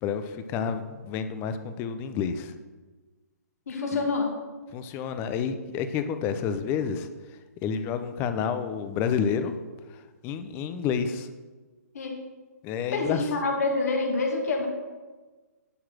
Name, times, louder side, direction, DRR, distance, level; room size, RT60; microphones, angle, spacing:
voice 1, 0.0-2.5 4.7-9.5 9.8-11.3 12.6-13.3, left 7 dB, 25° left, 9 dB, 0.7 m, -30 dB
voice 2, 3.7-4.3 11.9-12.2 12.9-14.7, left 3 dB, 60° left, 1 dB, 2.2 m, -27 dB
10.0 x 4.7 x 6.2 m, 1.3 s
hypercardioid pair, 140°, 9 cm